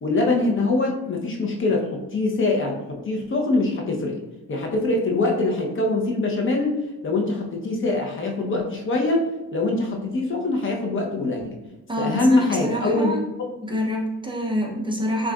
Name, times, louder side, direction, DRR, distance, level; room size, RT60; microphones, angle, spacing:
voice 1, 0.0-4.2 4.5-6.7 7.0-11.6 12.0-13.1 13.4-13.5, left 2 dB, 40° left, 1 dB, 0.8 m, -23 dB
voice 2, 11.9-13.3 13.6-15.3, equal, 15° right, -1 dB, 0.6 m, -27 dB
6.1 x 2.5 x 2.3 m, 1.0 s
cardioid pair, 90°, 30 cm